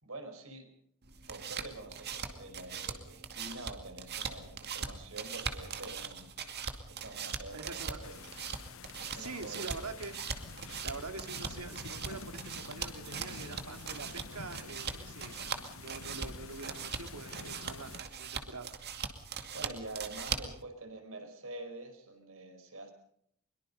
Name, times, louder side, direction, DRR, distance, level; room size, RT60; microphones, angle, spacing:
voice 1, 0.0-0.7 1.3-6.3 6.9-8.2 9.0-9.7 19.5-22.9, right 2 dB, 65° right, 5 dB, 5.1 m, -46 dB
sound 1, 1.0-20.6, right 6 dB, 50° right, 2.3 m, -41 dB
voice 2, 7.5-8.2 9.1-10.2 10.8-15.4 15.7-18.7, right 3 dB, 90° right, 7 dB, 2.4 m, -45 dB
sound 2, 8.0-18.0, left 5 dB, 65° left, 0.9 m, -48 dB
23.0 x 22.5 x 5.5 m, 0.67 s
head